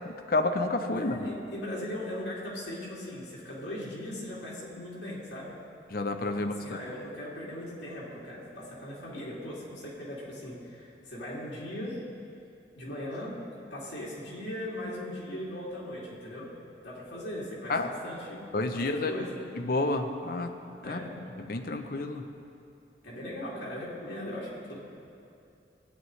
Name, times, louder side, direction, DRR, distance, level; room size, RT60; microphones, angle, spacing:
voice 1, 0.0-1.1 5.9-6.8 17.7-17.9 18.5-19.1 19.6-20.5 20.9-21.0 21.5-22.2, left 2 dB, 50° left, 6 dB, 0.6 m, -29 dB
voice 2, 1.0-5.6 6.4-12.0 12.7-16.5 16.8-18.4 18.7-19.4 20.8-21.3 23.0-24.8, left 1 dB, 75° left, -7 dB, 2.6 m, -39 dB
16.0 x 9.2 x 3.2 m, 2.6 s
head